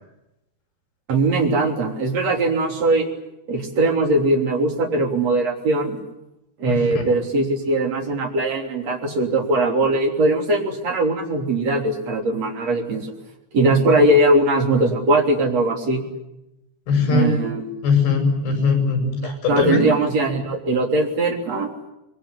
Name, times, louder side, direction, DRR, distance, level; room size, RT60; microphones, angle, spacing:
voice 1, 1.1-3.1 3.5-6.0 6.6-13.1 13.5-16.0 17.1-17.6 19.2-21.7, right 2 dB, 40° right, 2 dB, 4.1 m, -20 dB
voice 2, 6.7-7.1 16.9-17.4 17.8-19.9, left 4 dB, 70° left, 5 dB, 8.1 m, -20 dB
25.0 x 22.5 x 9.8 m, 0.90 s
omnidirectional pair, 5.0 m